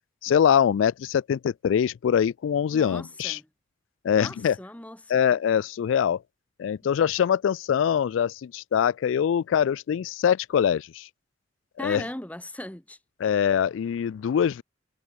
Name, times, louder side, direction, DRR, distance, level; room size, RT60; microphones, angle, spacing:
voice 1, 0.2-3.4 4.0-4.6 5.1-6.2 6.6-11.1 11.8-12.0 13.2-14.6, left 8 dB, 80° left, 0.3 m, -23 dB
voice 2, 2.7-3.5 4.1-5.2 11.8-13.0, left 1 dB, 10° left, 0.8 m, -38 dB
head